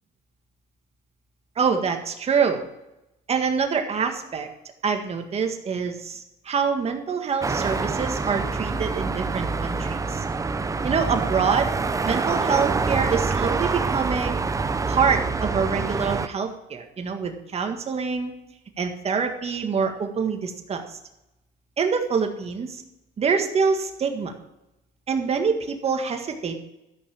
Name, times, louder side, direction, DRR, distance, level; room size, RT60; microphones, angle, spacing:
voice 1, 1.6-2.6 3.3-4.5 4.8-10.2 10.8-11.7 12.0-14.4 14.9-18.3 18.8-20.8 21.8-22.8 23.2-24.3 25.1-26.6, right 5 dB, 35° right, 5 dB, 1.7 m, -25 dB
sound 1, 7.4-16.3, right 4 dB, 20° right, 0.6 m, -26 dB
13.0 x 5.8 x 7.1 m, 0.90 s
cardioid pair, 110°, 17 cm